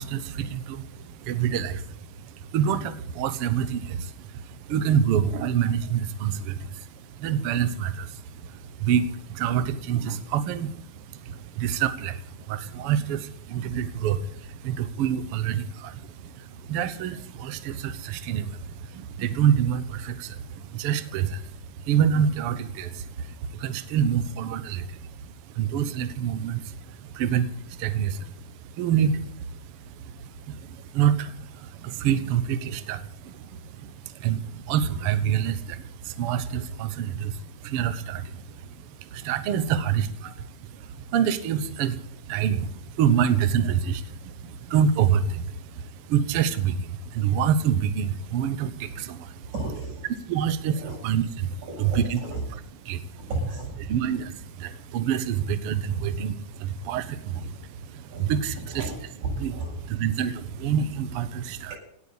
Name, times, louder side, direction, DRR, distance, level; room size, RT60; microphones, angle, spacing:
voice 1, 0.0-49.5 50.2-52.2 52.9-53.3 53.9-58.8 59.4-59.5 59.9-61.8, right 8 dB, 80° right, 11 dB, 1.3 m, -27 dB
voice 2, 39.5-39.8 40.2-40.3 49.4-50.1 50.7-51.0 51.6-52.4 53.2-54.0 58.1-58.2 58.7-59.8, right 2 dB, 50° right, -2 dB, 9.0 m, -34 dB
18.0 x 8.3 x 8.6 m, 0.67 s
omnidirectional pair, 4.1 m